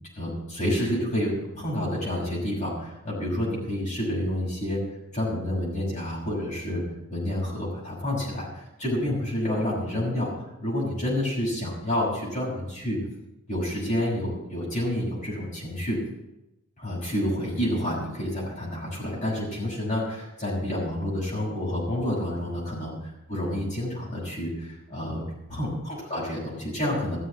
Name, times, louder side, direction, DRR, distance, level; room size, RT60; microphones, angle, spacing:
voice 1, 0.1-4.8 5.1-6.8 7.1-10.3 10.6-13.0 13.5-16.0 16.8-25.2 25.5-27.2, left 1 dB, 35° left, -6 dB, 6.3 m, -29 dB
14.0 x 7.4 x 8.2 m, 0.94 s
head